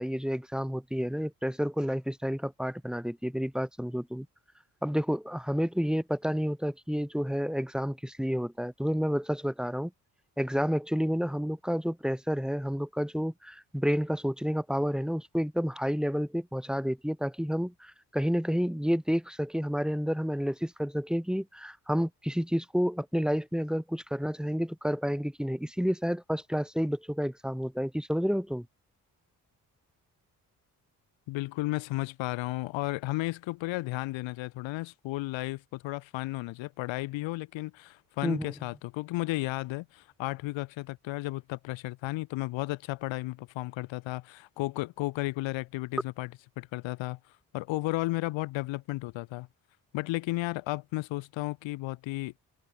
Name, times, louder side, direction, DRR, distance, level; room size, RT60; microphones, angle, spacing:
voice 1, 0.0-4.3 4.8-9.9 10.4-28.6 38.2-38.5, equal, ahead, 3.4 m, -30 dB
voice 2, 31.3-46.3 46.6-47.2 47.5-49.5 49.9-52.3, left 20 dB, 80° left, 7.1 m, -33 dB
hypercardioid pair, 40°, 45 cm